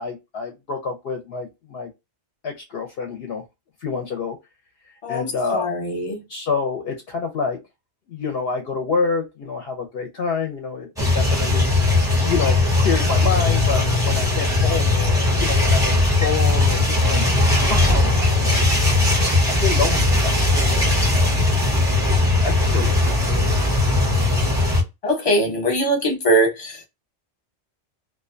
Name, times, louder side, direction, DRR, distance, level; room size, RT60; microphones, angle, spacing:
voice 1, 0.0-1.9 2.4-3.4 3.8-4.4 5.1-5.7 6.3-7.6 8.1-11.7 12.0-17.3 17.7-18.9 19.3-21.3 22.0-23.0, left 5 dB, 65° left, 0.7 m, -28 dB
voice 2, 5.0-6.2 25.0-26.9, right 1 dB, 35° left, 0.9 m, -21 dB
sound 1, 11.0-24.8, left 2 dB, 5° right, 0.6 m, -19 dB
2.4 x 2.1 x 2.4 m
omnidirectional pair, 1.1 m